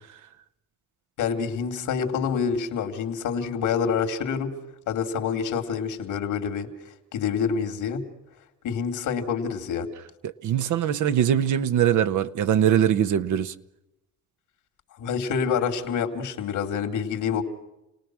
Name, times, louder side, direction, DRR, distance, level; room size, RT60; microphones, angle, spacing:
voice 1, 1.2-4.5 4.9-6.7 7.1-8.0 8.6-9.9 15.0-17.4, left 6 dB, 85° left, 2.9 m, -27 dB
voice 2, 10.2-13.5, right 10 dB, 75° right, 1.1 m, -22 dB
29.5 x 19.0 x 6.3 m
cardioid pair, 90°, 30 cm